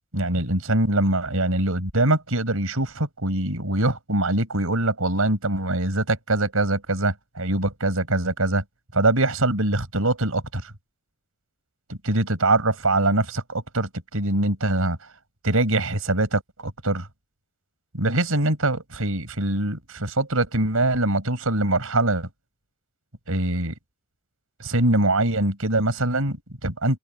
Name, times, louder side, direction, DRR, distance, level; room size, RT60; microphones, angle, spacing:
voice 1, 0.1-8.6 8.9-10.7 11.9-15.0 15.4-17.1 17.9-22.3 23.3-23.7 24.6-27.0, right 2 dB, 70° right, 6.9 m, -23 dB
head